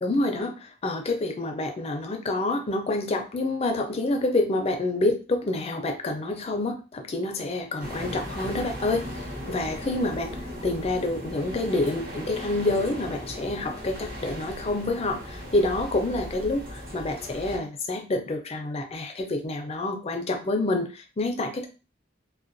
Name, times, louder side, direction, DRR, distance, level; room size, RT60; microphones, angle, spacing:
voice 1, 0.0-9.0 9.5-10.3 10.6-21.7, left 2 dB, 35° left, 5 dB, 0.4 m, -27 dB
sound 1, 7.8-17.6, equal, 55° right, 0.9 m, -37 dB
2.3 x 2.2 x 2.5 m, 0.32 s
head